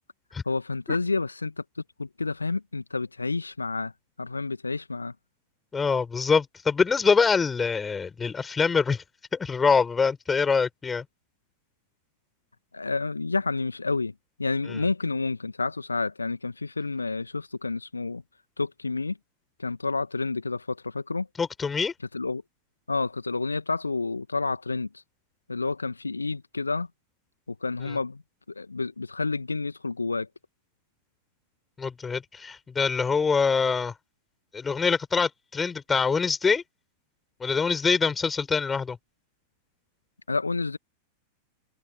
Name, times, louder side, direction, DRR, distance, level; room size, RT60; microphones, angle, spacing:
voice 1, 0.5-1.6 2.0-3.9 4.2-5.1 12.7-14.1 14.4-18.2 18.6-19.2 19.6-21.3 22.1-22.4 22.9-25.0 25.5-26.9 27.6-28.2 28.6-30.3 40.3-40.8, left 3 dB, 80° left, 1.8 m, -29 dB
voice 2, 5.7-9.0 9.3-11.0 14.7-14.9 21.4-21.9 27.8-28.0 31.8-33.9 34.5-36.6 37.4-39.0, left 5 dB, 15° left, 6.7 m, -24 dB
figure-of-eight pair, 90°, 0 cm